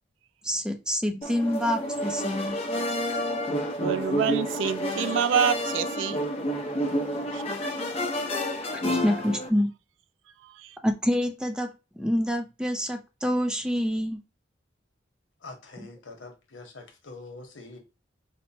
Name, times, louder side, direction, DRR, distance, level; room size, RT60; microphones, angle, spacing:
voice 1, 0.4-2.6 8.8-9.7 10.8-11.7 12.0-14.2, equal, 5° right, 0.5 m, -27 dB
sound 1, 1.2-9.5, equal, 35° left, 0.8 m, -29 dB
voice 2, 3.8-6.2 7.3-7.4 8.0-8.1 10.6-10.7, right 8 dB, 85° right, 0.3 m, -27 dB
voice 3, 15.4-17.8, left 3 dB, 90° left, 1.0 m, -44 dB
4.3 x 2.1 x 2.7 m
head